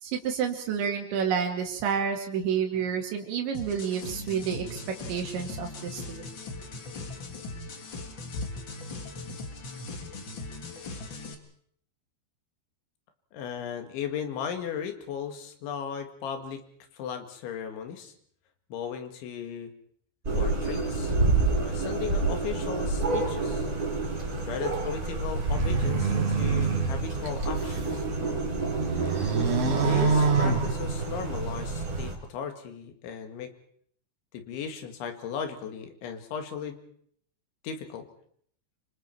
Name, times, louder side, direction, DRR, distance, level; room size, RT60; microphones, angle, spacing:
voice 1, 0.0-4.8 5.1-6.2, right 7 dB, 80° right, 3 dB, 4.6 m, -29 dB
sound 1, 3.5-11.3, left 3 dB, 40° left, 1.7 m, -39 dB
voice 2, 13.3-16.6 16.9-18.1 18.7-19.7 20.3-21.2 21.5-23.7 24.3-28.0 29.8-33.5 34.3-36.8 37.6-38.1, left 7 dB, 85° left, 6 dB, 4.4 m, -36 dB
sound 2, 20.2-32.1, right 3 dB, 20° right, 4.5 m, -29 dB
sound 3, 25.3-28.0 28.4-31.3, right 5 dB, 40° right, 3.5 m, -27 dB
27.5 x 26.0 x 4.6 m, 0.62 s
omnidirectional pair, 5.2 m